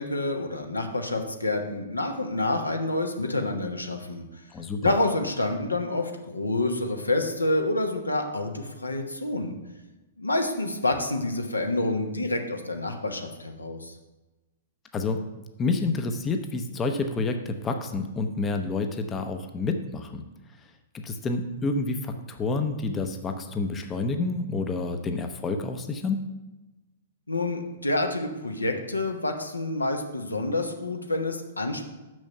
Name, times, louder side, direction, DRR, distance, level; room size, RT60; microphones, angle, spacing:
voice 1, 0.0-4.2 4.8-9.6 10.2-13.9 27.3-31.9, left 2 dB, 85° left, 4 dB, 1.0 m, -28 dB
voice 2, 4.5-4.9 14.9-15.2 15.6-20.2 20.9-26.3, left 3 dB, 20° left, 6 dB, 0.7 m, -29 dB
6.2 x 6.2 x 5.7 m, 1.1 s
figure-of-eight pair, 110°, 0 cm